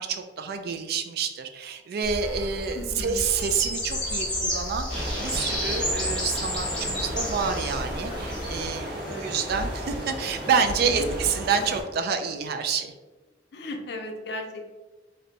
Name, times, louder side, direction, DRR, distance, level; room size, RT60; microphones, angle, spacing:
voice 1, 0.0-12.9, right 6 dB, 55° right, 8 dB, 0.3 m, -28 dB
sound 1, 2.0-8.7, left 1 dB, 5° left, 0.9 m, -31 dB
voice 2, 2.7-3.2 9.1-9.2 10.9-11.0 13.5-14.7, left 2 dB, 60° left, 3 dB, 0.5 m, -36 dB
sound 2, 4.9-11.8, equal, 70° right, 1.2 m, -34 dB
2.6 x 2.1 x 3.9 m, 1.2 s
head